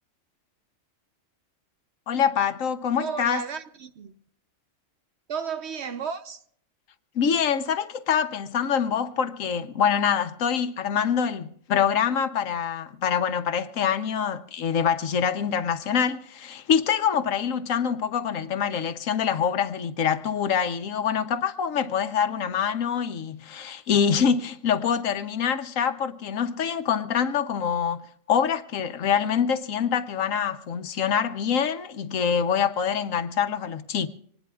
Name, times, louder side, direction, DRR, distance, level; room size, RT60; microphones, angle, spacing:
voice 1, 2.1-3.4 7.1-34.1, left 7 dB, 70° left, 1.2 m, -25 dB
voice 2, 3.0-4.1 5.3-6.4, right 6 dB, 55° right, 1.0 m, -33 dB
25.5 x 19.5 x 2.4 m
omnidirectional pair, 1.4 m